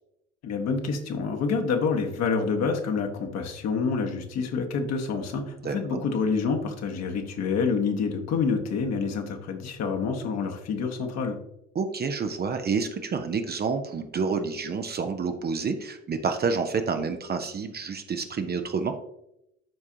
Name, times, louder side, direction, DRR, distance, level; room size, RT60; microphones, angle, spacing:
voice 1, 0.4-11.4, left 5 dB, 45° left, 3 dB, 1.5 m, -27 dB
voice 2, 5.6-6.0 11.7-18.9, right 5 dB, 25° right, 6 dB, 0.8 m, -29 dB
12.5 x 4.7 x 2.8 m, 0.82 s
figure-of-eight pair, 60°, 37 cm